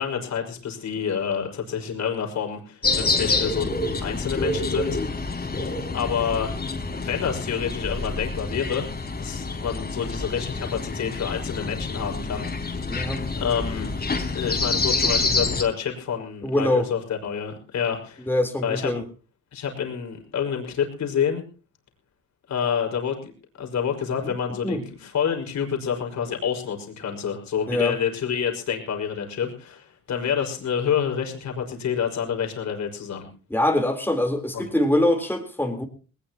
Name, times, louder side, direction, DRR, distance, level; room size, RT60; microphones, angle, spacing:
voice 1, 0.0-3.7 4.0-5.3 5.9-6.5 6.9-8.8 9.2-12.5 12.9-13.9 14.3-18.3 18.6-18.9 19.5-21.4 22.5-23.3 23.6-33.3 34.5-34.7, left 7 dB, 65° left, 3 dB, 5.6 m, -28 dB
sound 1, 2.8-15.6, left 3 dB, 30° left, 4.5 m, -27 dB
voice 2, 12.9-13.2 15.0-15.2 16.4-16.9 18.2-19.0 24.2-24.3 24.6-24.8 27.7-28.0 33.5-35.8, left 1 dB, 5° left, 3 dB, 3.9 m, -24 dB
20.0 x 19.5 x 3.0 m, 0.37 s
cardioid pair, 90°, 30 cm